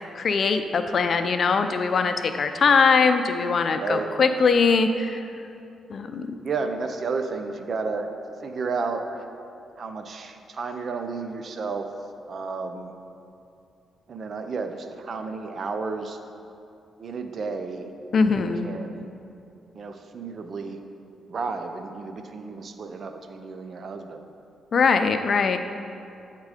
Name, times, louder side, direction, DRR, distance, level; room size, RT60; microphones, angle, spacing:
voice 1, 0.2-5.2 5.9-6.3 18.1-18.7 24.7-25.6, left 5 dB, 55° left, 8 dB, 0.4 m, -21 dB
voice 2, 3.8-4.1 6.4-8.1 8.4-9.3 9.8-11.9 12.3-12.9 14.1-16.2 17.0-19.1 19.7-20.8 21.3-24.2, right 4 dB, 55° right, 7 dB, 0.5 m, -32 dB
8.2 x 3.7 x 4.9 m, 2.6 s
cardioid pair, 75°, 0 cm